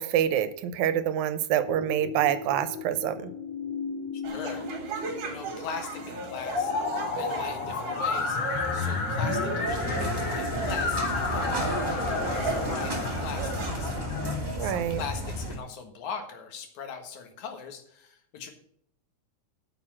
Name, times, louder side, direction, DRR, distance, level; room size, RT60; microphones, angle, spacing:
voice 1, 0.0-3.3 14.6-15.0, right 10 dB, 90° right, 12 dB, 2.1 m, -26 dB
sound 1, 1.7-14.4, left 4 dB, 60° left, 2.8 m, -32 dB
sound 2, 4.2-14.0, right 5 dB, 55° right, 2.7 m, -37 dB
voice 2, 4.3-6.7 7.1-8.4 8.7-18.5, left 6 dB, 80° left, 6 dB, 2.8 m, -40 dB
sound 3, 9.7-15.6, equal, 10° right, 1.2 m, -33 dB
9.1 x 6.9 x 7.3 m, 0.69 s
omnidirectional pair, 3.4 m